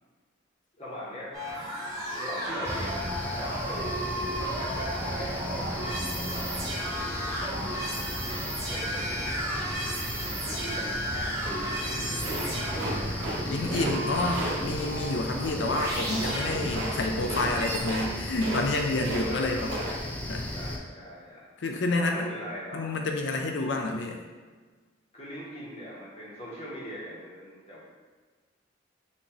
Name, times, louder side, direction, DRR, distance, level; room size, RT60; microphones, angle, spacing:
voice 1, 0.7-1.3 2.2-4.2 4.5-5.8 6.1-7.4 8.2-9.6 10.4-10.9 11.1-13.1 14.1-14.2 19.2-20.0 20.5-21.5 21.9-22.9 25.1-27.8, equal, 30° left, -7 dB, 1.4 m, -41 dB
sound 1, 1.3-17.8, right 1 dB, 20° right, 1.1 m, -34 dB
sound 2, 2.6-20.8, left 1 dB, 10° left, 0.4 m, -36 dB
sound 3, 12.2-13.4 13.7-13.9 14.3-14.6 16.1-16.4 16.7-16.9 17.2-17.5 17.8-18.1 18.3-19.2 19.5-19.9, right 1 dB, 85° right, 1.0 m, -34 dB
voice 2, 13.5-19.7 20.3-20.5 21.6-22.3 22.7-24.2, left 2 dB, 70° left, 3 dB, 0.5 m, -29 dB
5.8 x 2.8 x 3.1 m, 1.4 s
head